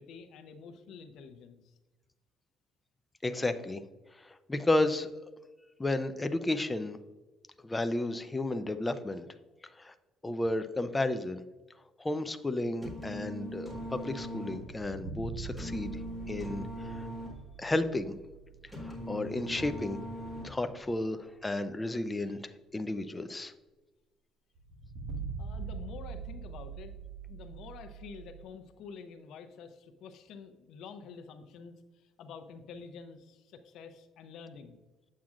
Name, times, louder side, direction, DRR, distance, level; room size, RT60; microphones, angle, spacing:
voice 1, 0.0-1.8 25.4-26.9 27.3-34.8, left 5 dB, 70° left, 7 dB, 0.7 m, -48 dB
voice 2, 3.2-3.8 4.1-5.1 5.8-7.0 7.6-9.3 9.8-9.9 10.2-11.4 12.0-16.0 16.3-17.0 17.6-18.1 18.7-20.0 20.4-23.5, left 2 dB, 15° left, 9 dB, 0.4 m, -32 dB
sound 1, 12.8-20.8, equal, 5° right, 1.9 m, -41 dB
sound 2, 14.6-19.2 19.4-19.5 24.6-28.4, right 5 dB, 65° right, 1.2 m, -43 dB
8.3 x 7.5 x 2.5 m, 1.2 s
cardioid pair, 140°, 0 cm